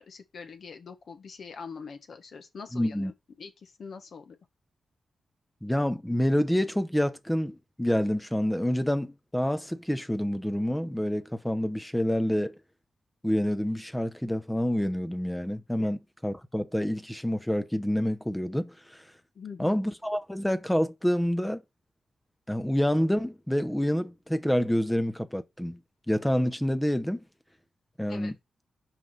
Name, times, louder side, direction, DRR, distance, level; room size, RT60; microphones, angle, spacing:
voice 1, 0.0-4.4 15.8-15.9 19.3-19.8 28.1-28.3, left 5 dB, 60° left, 1.6 m, -43 dB
voice 2, 2.7-3.1 5.6-12.5 13.2-19.0 19.6-21.6 22.5-25.8 26.1-27.2 28.0-28.3, equal, 5° left, 0.8 m, -27 dB
5.9 x 5.3 x 5.9 m
wide cardioid pair, 135°, 0 cm